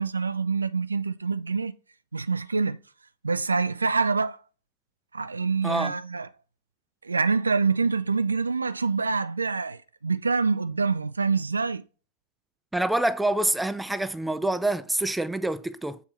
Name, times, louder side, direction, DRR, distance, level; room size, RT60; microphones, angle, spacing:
voice 1, 0.0-1.7 2.1-2.8 3.2-4.4 5.1-6.3 7.0-11.8, right 4 dB, 75° right, 0.3 m, -26 dB
voice 2, 12.7-16.0, right 1 dB, 5° right, 0.4 m, -26 dB
6.9 x 4.3 x 3.4 m
figure-of-eight pair, 90°, 0 cm